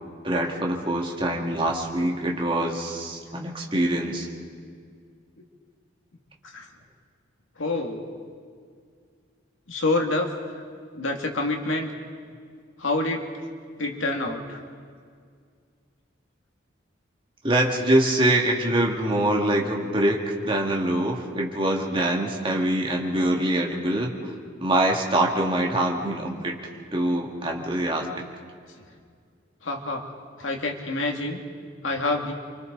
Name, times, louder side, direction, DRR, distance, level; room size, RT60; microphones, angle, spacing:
voice 1, 0.2-4.3 17.4-24.3 24.6-26.6 26.9-28.3, right 1 dB, 25° right, 0 dB, 2.1 m, -24 dB
voice 2, 7.6-8.0 9.7-10.3 10.9-11.9 12.8-13.2 13.8-14.6 29.6-30.0 30.4-31.4 31.8-32.3, left 2 dB, 85° left, 2 dB, 2.3 m, -27 dB
29.0 x 25.0 x 4.0 m, 2.1 s
head